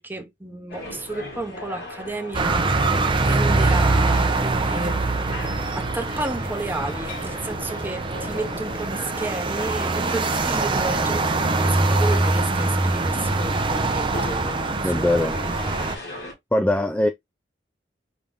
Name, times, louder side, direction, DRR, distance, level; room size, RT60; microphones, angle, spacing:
voice 1, 0.0-2.7 3.3-5.1 5.7-15.7, right 2 dB, 10° right, 1.0 m, -32 dB
sound 1, 0.7-16.3, left 2 dB, 60° left, 1.9 m, -39 dB
sound 2, 2.3-16.0, right 3 dB, 30° right, 0.7 m, -23 dB
voice 2, 14.8-15.3 16.5-17.1, left 1 dB, 10° left, 0.4 m, -21 dB
5.1 x 2.9 x 3.6 m
head